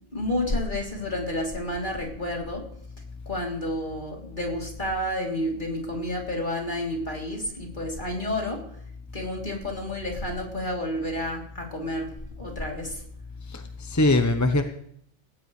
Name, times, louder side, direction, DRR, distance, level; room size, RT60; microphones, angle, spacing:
voice 1, 0.1-2.6 3.2-8.6 9.1-12.1 12.4-13.0, left 1 dB, 40° left, -1 dB, 3.4 m, -30 dB
voice 2, 13.5-14.6, left 2 dB, 15° left, 6 dB, 0.8 m, -22 dB
18.0 x 16.5 x 3.2 m, 0.67 s
omnidirectional pair, 1.2 m